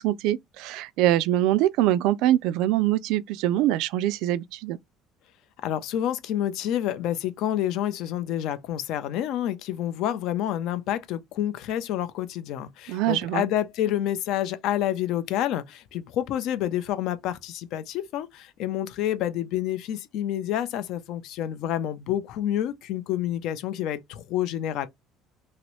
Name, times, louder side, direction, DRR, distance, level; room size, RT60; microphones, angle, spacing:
voice 1, 0.0-4.8 12.9-13.5, right 14 dB, 75° right, 0.3 m, -23 dB
voice 2, 5.6-24.9, left 11 dB, 65° left, 0.6 m, -28 dB
3.0 x 2.8 x 3.1 m
cardioid pair, 150°, 0 cm